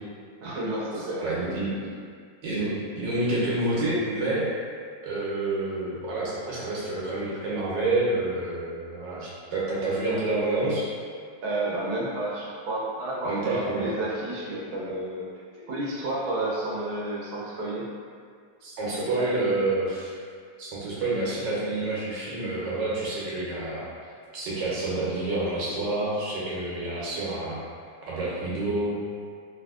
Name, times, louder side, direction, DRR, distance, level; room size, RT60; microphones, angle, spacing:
voice 1, 0.4-1.3 11.4-15.3 15.7-17.8 19.0-19.3, right 1 dB, 70° right, -5 dB, 1.2 m, -31 dB
voice 2, 0.9-1.7 2.4-4.5 5.0-10.9 13.2-14.0 18.6-20.2 20.6-23.8 24.3-27.6 28.1-29.0, right 2 dB, 85° right, -8 dB, 1.5 m, -28 dB
3.4 x 2.6 x 2.4 m, 2.1 s
omnidirectional pair, 1.8 m